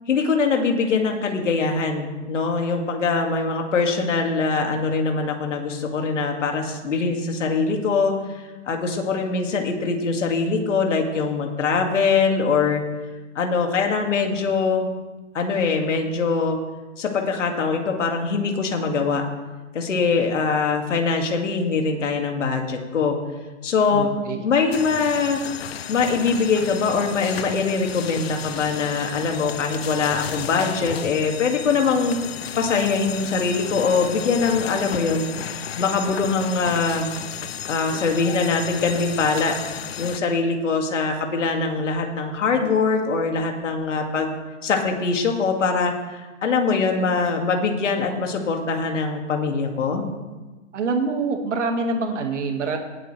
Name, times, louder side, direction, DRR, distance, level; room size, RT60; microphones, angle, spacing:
voice 1, 0.1-12.8 13.3-14.9 15.3-16.6 17.0-19.2 19.7-23.2 23.6-24.1 24.4-25.4 25.9-32.2 32.6-35.3 35.8-37.1 37.7-39.6 40.0-44.4 44.6-50.0, left 4 dB, 75° left, 2 dB, 2.3 m, -22 dB
voice 2, 23.9-24.4 50.7-52.8, right 3 dB, 70° right, 4 dB, 1.9 m, -25 dB
sound 1, 24.7-40.2, left 9 dB, 55° left, 0.7 m, -33 dB
18.5 x 8.2 x 3.4 m, 1.2 s
hypercardioid pair, 170°, 37 cm